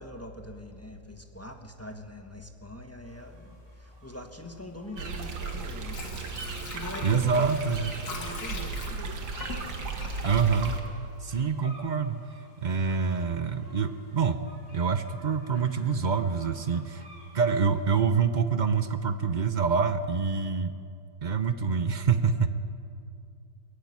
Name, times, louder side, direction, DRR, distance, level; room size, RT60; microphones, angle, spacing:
voice 1, 0.0-7.5 8.1-9.2, left 1 dB, 10° left, 4 dB, 1.3 m, -43 dB
sound 1, 3.0-18.0, right 1 dB, 10° right, 6.1 m, -57 dB
sound 2, 5.0-10.8, right 3 dB, 90° right, 2.6 m, -35 dB
Water / Sink (filling or washing), 5.5-11.4 11.8-11.9, left 3 dB, 75° left, 2.8 m, -42 dB
voice 2, 7.0-7.9 10.2-10.8 11.2-12.3 12.6-14.4 14.7-17.1 17.3-20.7 21.2-22.5, right 5 dB, 55° right, 10 dB, 0.5 m, -26 dB
21.0 x 15.5 x 9.6 m, 2.4 s
omnidirectional pair, 2.0 m